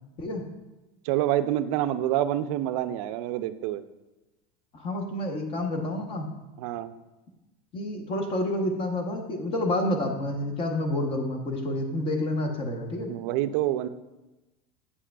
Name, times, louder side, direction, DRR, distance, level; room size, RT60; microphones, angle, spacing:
voice 1, 1.0-3.8 6.6-6.9 13.1-13.9, right 12 dB, 55° right, 12 dB, 0.4 m, -27 dB
voice 2, 4.7-6.3 7.7-13.1, left 1 dB, 25° left, 3 dB, 0.8 m, -29 dB
8.4 x 7.3 x 2.3 m, 1.1 s
supercardioid pair, 170°, 20 cm